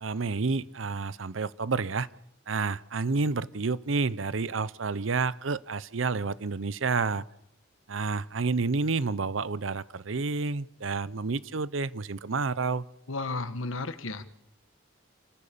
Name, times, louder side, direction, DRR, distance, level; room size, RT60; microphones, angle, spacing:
voice 1, 0.0-2.1 2.5-7.2 7.9-12.8, right 4 dB, 80° right, 18 dB, 0.7 m, -29 dB
voice 2, 13.1-14.2, left 3 dB, 90° left, 11 dB, 1.5 m, -33 dB
28.5 x 15.0 x 7.0 m, 0.88 s
head